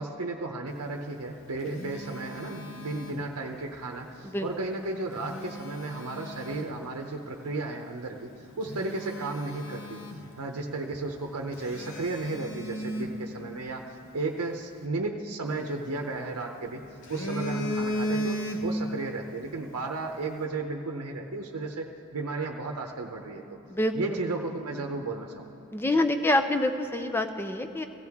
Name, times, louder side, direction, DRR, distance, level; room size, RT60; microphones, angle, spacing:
voice 1, 0.0-10.0 10.4-13.9 14.1-16.8 17.1-21.9 22.1-23.4 23.9-25.5, right 3 dB, 80° right, 2 dB, 0.8 m, -34 dB
Telephone, 1.1-3.7 4.9-6.8 7.4-7.6 8.2-8.3 8.6-10.7 10.9-11.1 11.6-13.9 15.5-16.5 16.8-19.0 19.3-19.5, equal, 60° left, 0.9 m, -36 dB
voice 2, 25.7-27.8, left 1 dB, 10° left, 7 dB, 0.5 m, -26 dB
16.0 x 15.5 x 3.6 m, 2.8 s
head